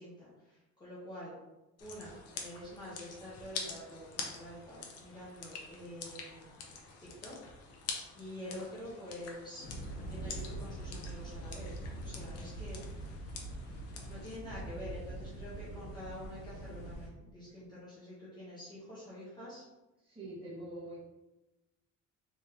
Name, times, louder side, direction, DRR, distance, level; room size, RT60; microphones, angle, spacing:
voice 1, 0.0-1.3 1.8-6.6 7.0-7.4 8.1-11.7 12.0-12.8 14.0-19.6, left 1 dB, 15° left, -9 dB, 0.9 m, -47 dB
sound 1, 1.8-14.4, left 5 dB, 55° left, 0.7 m, -46 dB
sound 2, 9.6-17.1, right 1 dB, 75° left, 1.1 m, -43 dB
voice 2, 20.0-21.0, right 1 dB, 15° right, -7 dB, 1.5 m, -44 dB
3.5 x 3.5 x 2.8 m, 1.0 s
cardioid pair, 160°, 30 cm